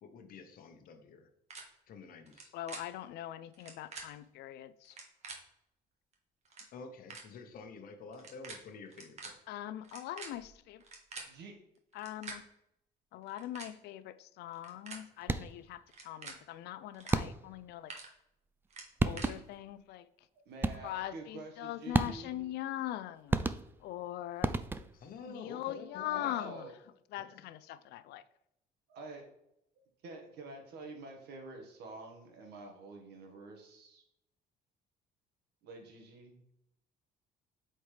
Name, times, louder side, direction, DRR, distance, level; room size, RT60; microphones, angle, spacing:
voice 1, 0.0-1.3 1.9-2.5 6.7-9.4 24.9-26.5 27.2-27.5, left 4 dB, 60° left, 5 dB, 0.9 m, -49 dB
sound 1, 1.5-1.6 2.3-2.4 2.7-2.8 3.5-4.0 4.8-5.4 6.1-6.2 6.4-6.7 7.1-7.2 8.1-8.6 8.9-9.3 9.8-11.3 11.9-12.4 13.2-13.7 14.5-15.0 15.9-16.3 16.9-17.1 17.5-18.1 18.7-19.3, right 4 dB, 40° right, 1.6 m, -46 dB
voice 2, 2.5-5.0 9.5-10.8 11.9-12.4 13.1-17.9 19.0-20.1 20.8-23.4 23.8-24.5 25.3-26.7 27.1-28.2, left 13 dB, 80° left, 15 dB, 0.4 m, -41 dB
sound 2, 15.2-15.7 17.1-17.6 18.7-18.8 19.0-19.6 20.6-21.1 21.9-22.5 23.3-24.0 24.4-25.1, right 3 dB, 10° right, 0.3 m, -33 dB
voice 3, 20.4-22.5 26.1-26.7 28.9-29.2 30.0-34.0 35.6-36.3, right 2 dB, 75° right, 2 dB, 1.6 m, -48 dB
7.9 x 4.3 x 3.3 m, 0.80 s
cardioid pair, 110°, 17 cm